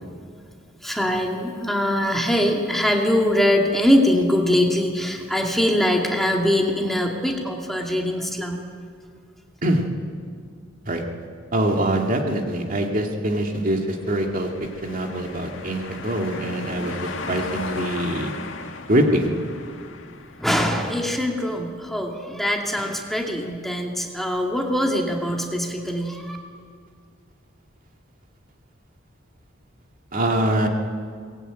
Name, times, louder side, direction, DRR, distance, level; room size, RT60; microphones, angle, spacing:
voice 1, 0.8-8.6 20.4-26.4, left 1 dB, ahead, 0 dB, 2.2 m, -22 dB
voice 2, 11.5-14.5 14.8-18.3 18.9-19.3 30.1-30.7, right 1 dB, 45° right, 2 dB, 2.2 m, -23 dB
sound 1, 13.9-20.7, left 4 dB, 75° left, 1.9 m, -36 dB
23.0 x 20.0 x 9.0 m, 2.1 s
head